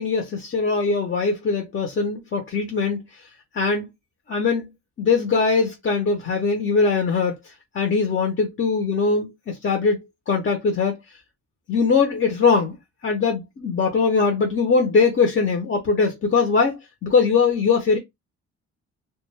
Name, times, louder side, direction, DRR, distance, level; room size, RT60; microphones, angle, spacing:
voice 1, 0.0-3.2 3.5-3.9 4.3-4.7 5.0-11.0 11.7-12.7 13.0-16.8 17.0-18.0, left 4 dB, 40° left, 0.7 m, -21 dB
2.3 x 2.3 x 3.2 m
cardioid pair, 90°, 30 cm